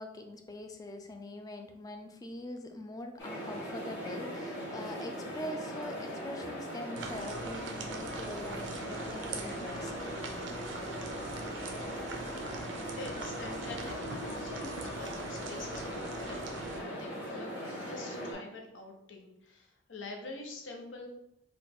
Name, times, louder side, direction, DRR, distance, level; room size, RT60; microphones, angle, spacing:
voice 1, 0.0-10.1, left 1 dB, 20° left, 5 dB, 0.3 m, -43 dB
sound 1, 3.2-18.3, equal, 65° left, 1.3 m, -40 dB
sound 2, 7.0-16.8, right 3 dB, 80° right, 0.5 m, -43 dB
voice 2, 13.0-21.1, left 2 dB, 85° left, 2 dB, 0.7 m, -45 dB
3.8 x 2.4 x 3.5 m, 0.82 s
head